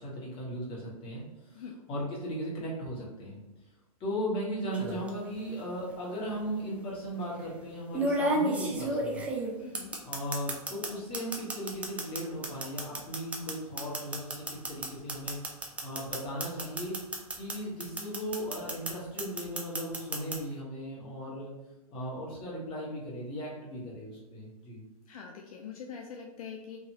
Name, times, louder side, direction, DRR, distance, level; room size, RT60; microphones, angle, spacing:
voice 1, 0.0-3.4 4.0-9.3 10.0-15.4 15.8-17.0 17.4-21.5 21.9-24.8, equal, 30° left, -5 dB, 1.2 m, -37 dB
sound 1, 4.7-5.1 6.3-6.4 7.9-10.9 11.1-17.5 17.8-18.9 19.2-20.4, right 1 dB, 5° right, 0.3 m, -31 dB
voice 2, 9.6-10.0 25.1-26.8, left 6 dB, 65° left, 1 dB, 0.4 m, -43 dB
2.8 x 2.5 x 2.8 m, 1.1 s
hypercardioid pair, 115°, 19 cm